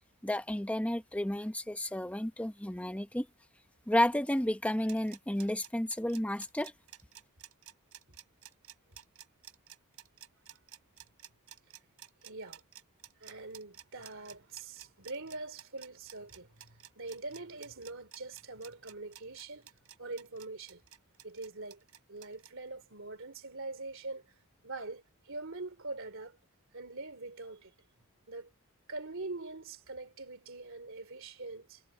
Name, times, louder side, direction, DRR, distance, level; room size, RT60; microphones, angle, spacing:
voice 1, 0.2-3.3 3.9-6.7, left 1 dB, 5° left, 1.0 m, -31 dB
sound 1, 4.7-22.5, right 11 dB, 80° right, 3.4 m, -52 dB
voice 2, 12.2-12.6 13.2-19.7 20.0-20.8 21.2-21.8 22.1-26.4 26.7-27.7 28.3-28.5 28.9-31.8, right 3 dB, 60° right, 3.2 m, -43 dB
head